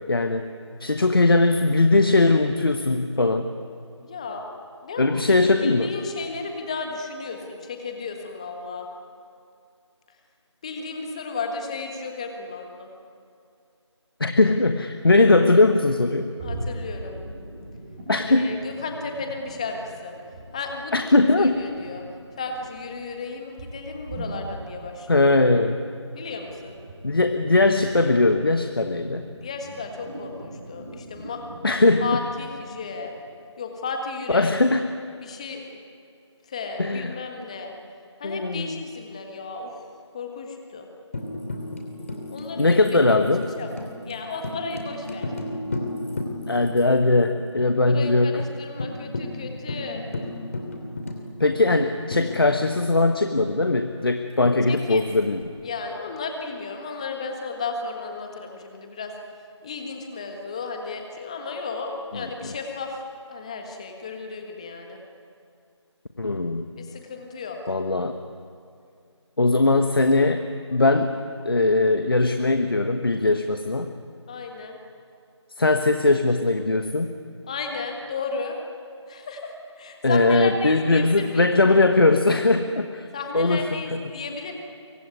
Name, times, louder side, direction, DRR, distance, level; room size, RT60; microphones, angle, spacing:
voice 1, 0.1-0.5 0.8-3.5 5.0-5.9 14.2-16.3 18.1-18.6 20.9-21.6 25.1-25.8 27.0-29.3 31.6-32.2 34.3-34.9 36.8-37.1 38.2-38.8 42.6-43.5 46.5-48.4 51.4-55.5 62.1-62.5 66.2-66.7 67.7-68.2 69.4-71.2 71.4-73.9 75.6-77.1 80.0-83.1 83.3-84.0, left 2 dB, 50° left, 7 dB, 1.3 m, -20 dB
voice 2, 4.0-4.4 4.8-5.2 5.6-8.9 10.6-12.9 16.4-17.2 18.3-20.1 20.5-22.0 22.4-25.3 26.1-26.8 29.4-31.4 32.0-33.1 33.6-34.5 35.2-35.6 36.5-37.7 38.2-39.7 40.1-40.9 42.3-43.2 43.6-43.7 44.0-45.3 47.8-50.0 54.7-55.0 55.6-59.1 59.6-63.0 63.3-65.0 66.8-67.6 74.3-74.8 77.5-78.6 79.1-81.5 83.1-84.5, left 4 dB, 15° left, 3 dB, 1.5 m, -34 dB
sound 1, 15.7-20.6 20.9-33.3, right 1 dB, 15° right, 6.8 m, -40 dB
Tambourine, 41.1-46.8 47.1-47.2 47.6-48.0 48.4-48.5 48.8-52.9 54.4-55.4, left 2 dB, 30° left, 2.9 m, -34 dB
24.0 x 23.5 x 9.7 m, 2.4 s
figure-of-eight pair, 165°, 15 cm